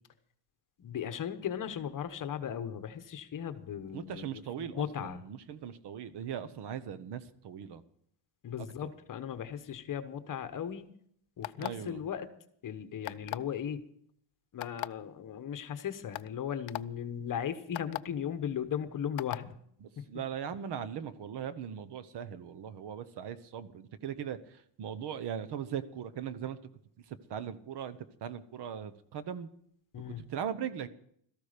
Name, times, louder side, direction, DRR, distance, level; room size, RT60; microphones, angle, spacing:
voice 1, 0.8-5.2 8.4-10.9 11.4-12.3 12.6-13.8 14.5-19.6 20.0-20.1 29.9-30.3, left 8 dB, 45° left, 11 dB, 1.1 m, -37 dB
voice 2, 3.9-7.8 8.8-8.9 11.6-12.0 19.8-24.4 24.8-26.6 27.3-29.5 30.3-30.9, right 8 dB, 65° right, 14 dB, 1.1 m, -39 dB
sound 1, 11.4-11.9 13.0-13.5 14.6-14.9 15.6-15.7 16.1-16.3 16.7-16.8 17.7-18.0 19.2-19.4, left 18 dB, 90° left, 0.6 m, -36 dB
17.0 x 13.5 x 5.1 m, 0.67 s
cardioid pair, 155°, 45 cm